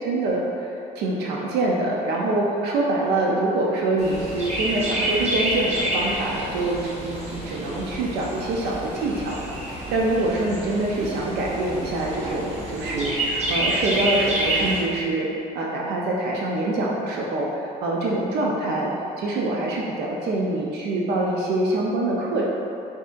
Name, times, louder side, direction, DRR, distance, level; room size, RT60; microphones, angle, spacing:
voice 1, 0.0-9.4 9.7-22.5, right 2 dB, 75° right, -3 dB, 0.5 m, -25 dB
Chirp tweet, 4.0-14.8, right 1 dB, 40° right, 1.1 m, -28 dB
5.9 x 2.7 x 2.5 m, 2.8 s
cardioid pair, 110°, 17 cm